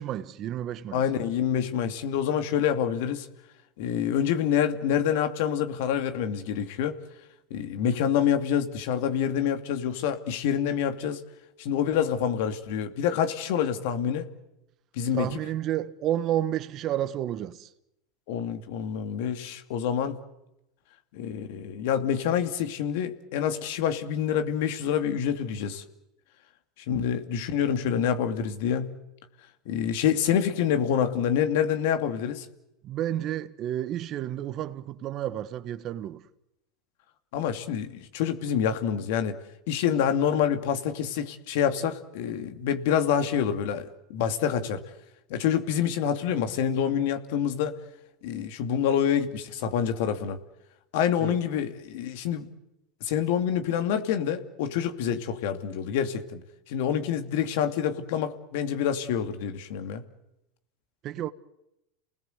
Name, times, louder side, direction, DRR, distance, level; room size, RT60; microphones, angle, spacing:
voice 1, 0.0-1.1 15.1-17.7 32.8-36.3 51.2-51.4 61.0-61.3, right 12 dB, 45° right, 1.3 m, -31 dB
voice 2, 0.9-3.3 3.8-7.0 7.5-11.2 11.6-14.3 15.0-15.3 18.3-20.2 21.1-25.8 26.9-28.9 29.7-32.5 37.3-39.4 39.7-44.8 45.3-47.8 48.2-50.4 50.9-52.5 53.0-56.4 56.7-60.0, left 8 dB, 70° left, 2.6 m, -27 dB
29.5 x 20.0 x 8.1 m
supercardioid pair, 115°, 0 cm